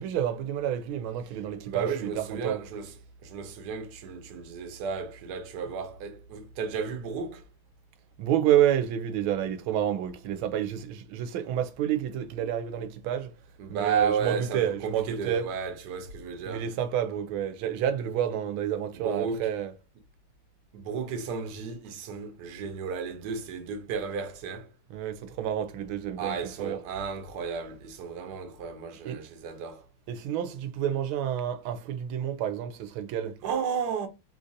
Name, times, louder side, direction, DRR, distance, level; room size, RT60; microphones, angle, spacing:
voice 1, 0.0-2.6 8.2-13.3 13.7-15.5 16.5-19.7 24.9-26.8 29.0-29.2 30.1-33.4, right 10 dB, 85° right, 1.4 m, -29 dB
voice 2, 1.6-2.9 3.2-7.4 13.6-16.7 18.9-19.5 20.7-24.7 26.2-29.8 33.4-34.1, right 6 dB, 65° right, 1.2 m, -33 dB
3.8 x 2.5 x 2.5 m
omnidirectional pair, 2.2 m